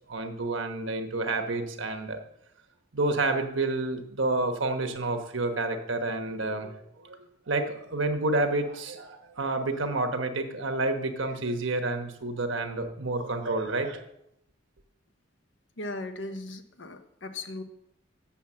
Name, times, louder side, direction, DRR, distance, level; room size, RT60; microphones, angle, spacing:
voice 1, 0.1-2.2 2.9-6.7 7.0-7.2 7.5-14.0, right 2 dB, 70° right, 6 dB, 1.2 m, -29 dB
voice 2, 15.8-17.6, left 2 dB, 65° left, 8 dB, 1.0 m, -37 dB
7.2 x 7.1 x 7.3 m, 0.77 s
head